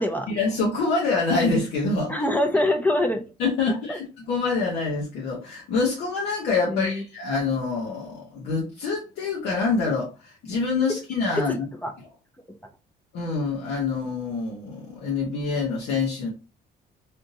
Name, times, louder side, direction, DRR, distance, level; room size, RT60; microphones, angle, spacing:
voice 1, 0.3-2.1 3.4-11.5 13.1-16.3, left 4 dB, 80° left, -3 dB, 1.0 m, -26 dB
voice 2, 2.1-3.2 3.9-4.0 6.7-7.0 11.4-11.9, left 1 dB, 10° left, 4 dB, 0.5 m, -24 dB
3.5 x 2.6 x 2.6 m, 0.31 s
cardioid pair, 110°, 17 cm